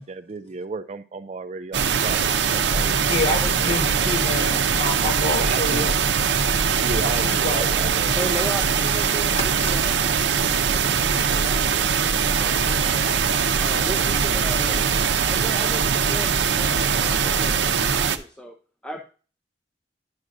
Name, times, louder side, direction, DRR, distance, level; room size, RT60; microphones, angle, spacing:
voice 1, 0.0-3.2 3.6-3.8 5.3-6.0 6.8-8.5, right 4 dB, 40° right, 0.4 m, -34 dB
sound 1, 1.7-18.2, right 6 dB, 85° right, 0.6 m, -21 dB
voice 2, 2.9-5.9 7.0-7.7 9.7-9.8, left 2 dB, 35° left, 1.5 m, -28 dB
voice 3, 8.2-13.1 13.5-14.8 15.2-18.5 18.8-19.0, equal, 5° left, 0.6 m, -36 dB
10.5 x 6.1 x 2.6 m
head